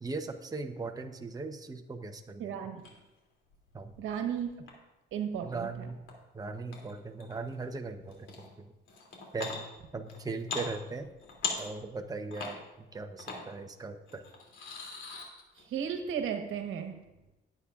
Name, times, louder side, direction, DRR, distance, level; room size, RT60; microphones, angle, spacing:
voice 1, 0.0-2.5 3.7-3.9 5.4-6.0 6.3-8.3 8.6-8.7 9.3-9.6 9.9-11.1 11.6-14.2, right 3 dB, 20° right, 5 dB, 0.9 m, -39 dB
voice 2, 2.4-2.8 4.0-4.6 5.1-5.9 15.6-17.0, right 8 dB, 85° right, 6 dB, 1.3 m, -35 dB
sound 1, 2.8-3.0 3.5-4.7 6.1-6.2 6.7-7.5 8.1-8.5 8.9-9.6 10.1-10.7 11.0-12.1 12.3-12.6 13.2-13.4 14.1-15.6, left 5 dB, 75° left, 2.9 m, -39 dB
19.0 x 8.5 x 2.5 m, 0.99 s
cardioid pair, 90°, 20 cm